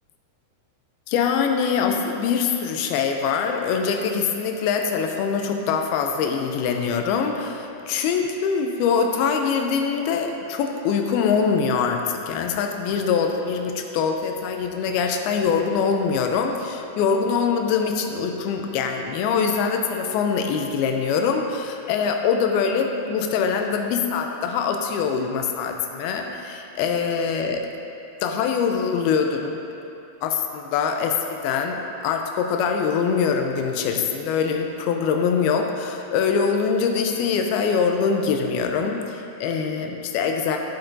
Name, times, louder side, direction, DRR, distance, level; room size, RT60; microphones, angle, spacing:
voice 1, 1.1-27.6 28.2-29.6 30.2-40.6, left 6 dB, 85° left, 4 dB, 2.2 m, -23 dB
11.5 x 8.8 x 2.6 m, 2.7 s
omnidirectional pair, 4.8 m